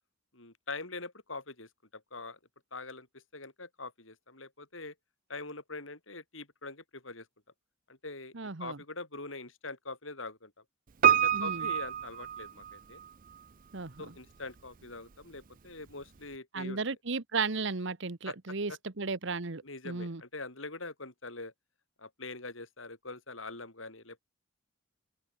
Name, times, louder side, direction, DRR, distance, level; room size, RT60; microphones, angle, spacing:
voice 1, 0.3-2.4 2.7-4.9 5.3-7.3 7.9-10.5 11.1-13.0 14.0-16.8 18.2-18.4 18.7-18.8 19.6-21.5 22.0-24.2, left 3 dB, 70° left, 6.3 m, -43 dB
voice 2, 8.3-8.8 11.3-11.7 13.7-14.1 16.5-20.2, right 4 dB, 65° right, 1.2 m, -35 dB
Piano, 11.0-13.1 13.3-13.4, right 8 dB, 40° right, 0.6 m, -27 dB
open air
head